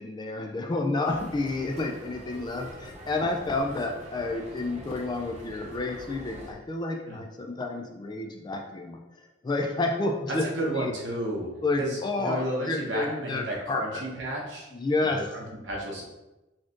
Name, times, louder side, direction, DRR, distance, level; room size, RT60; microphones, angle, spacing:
voice 1, 0.0-9.0 9.4-10.4 10.8-10.9 11.6-14.0 14.7-15.2, left 2 dB, 25° left, 2 dB, 0.3 m, -30 dB
sound 1, 1.0-6.5, equal, 35° right, 0.6 m, -45 dB
voice 2, 10.3-11.5 11.8-14.7 15.0-16.0, right 1 dB, 65° right, -3 dB, 1.0 m, -32 dB
4.1 x 3.0 x 2.5 m, 1.0 s
head